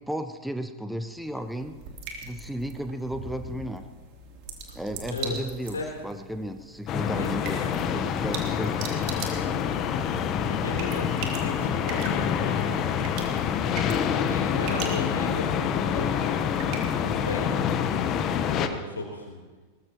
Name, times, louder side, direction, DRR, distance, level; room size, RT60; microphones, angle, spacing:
voice 1, 0.1-1.7 2.2-3.8 4.7-9.0 13.8-14.0, equal, ahead, 8 dB, 0.9 m, -34 dB
sound 1, 1.1-17.5, right 5 dB, 45° right, 3.3 m, -41 dB
sound 2, 6.9-18.7, left 8 dB, 35° left, 1.2 m, -27 dB
voice 2, 10.5-12.7 14.3-16.4 17.0-17.6 18.6-19.4, left 3 dB, 75° left, 0 dB, 3.5 m, -35 dB
22.0 x 20.5 x 3.1 m, 1.3 s
figure-of-eight pair, 90°, 0 cm